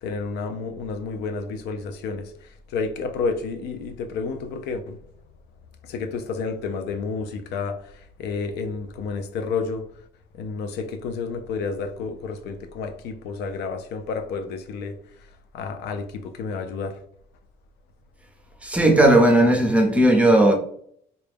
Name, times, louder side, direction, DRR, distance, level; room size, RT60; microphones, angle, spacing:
voice 1, 0.0-5.0 5.8-10.0 10.3-17.0, left 4 dB, 85° left, 0.5 m, -31 dB
voice 2, 18.6-20.5, right 1 dB, 5° right, 0.7 m, -16 dB
3.9 x 2.2 x 3.4 m
cardioid pair, 110°, 17 cm